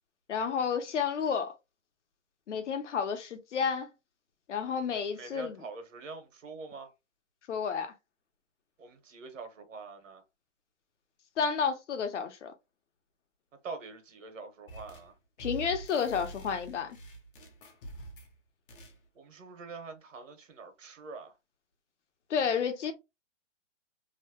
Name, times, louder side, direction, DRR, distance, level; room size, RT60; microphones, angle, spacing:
voice 1, 0.3-1.5 2.5-3.9 4.5-5.6 7.5-7.9 11.4-12.5 15.4-17.0 22.3-22.9, left 6 dB, 70° left, 0.9 m, -31 dB
voice 2, 4.9-6.9 8.8-10.2 13.6-15.1 19.1-21.3, right 4 dB, 90° right, 1.3 m, -45 dB
sound 1, 14.7-15.1 15.4-18.3 18.7-19.0, right 2 dB, 45° left, 0.9 m, -45 dB
3.0 x 2.2 x 2.9 m
hypercardioid pair, 170°, 37 cm